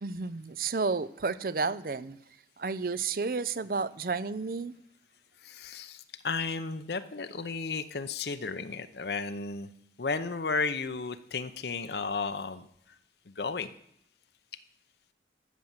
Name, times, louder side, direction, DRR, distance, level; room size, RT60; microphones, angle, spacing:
voice 1, 0.0-2.2 2.6-4.7, right 4 dB, 55° right, 16 dB, 0.5 m, -31 dB
voice 2, 5.4-9.7 10.0-13.0 13.3-13.7, left 4 dB, 70° left, 11 dB, 0.7 m, -34 dB
13.5 x 6.3 x 7.2 m, 0.73 s
head